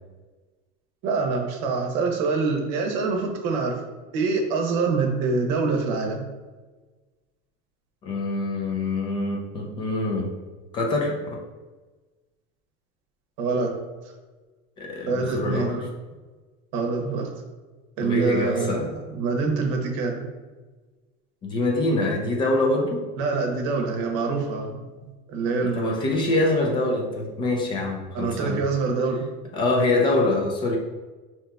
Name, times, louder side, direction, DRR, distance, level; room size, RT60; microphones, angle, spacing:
voice 1, 1.0-3.8 4.1-6.3 13.4-13.8 15.1-15.9 16.7-17.3 18.0-20.3 23.2-26.0 28.1-29.2, right 4 dB, 65° right, 2 dB, 0.8 m, -25 dB
voice 2, 8.0-10.3 10.7-11.4 14.8-15.9 18.0-18.9 21.4-23.1 25.6-28.6 29.5-30.8, left 2 dB, 25° left, 0 dB, 0.5 m, -25 dB
5.3 x 2.9 x 2.3 m, 1.3 s
cardioid pair, 165°, 19 cm